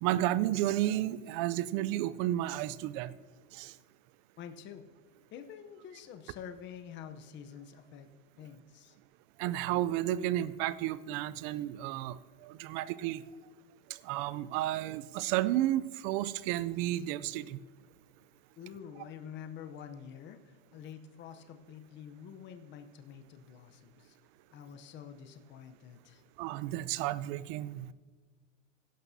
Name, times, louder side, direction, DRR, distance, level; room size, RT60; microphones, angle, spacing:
voice 1, 0.0-3.2 3.5-3.7 9.4-13.2 13.9-17.6 26.4-27.9, right 14 dB, 45° right, 17 dB, 0.5 m, -32 dB
voice 2, 4.4-4.8 5.3-8.1 8.4-9.0 18.6-24.2 24.5-26.2, left 8 dB, 30° left, 7 dB, 0.8 m, -47 dB
16.5 x 12.0 x 2.7 m, 1.4 s
supercardioid pair, 125°, 39 cm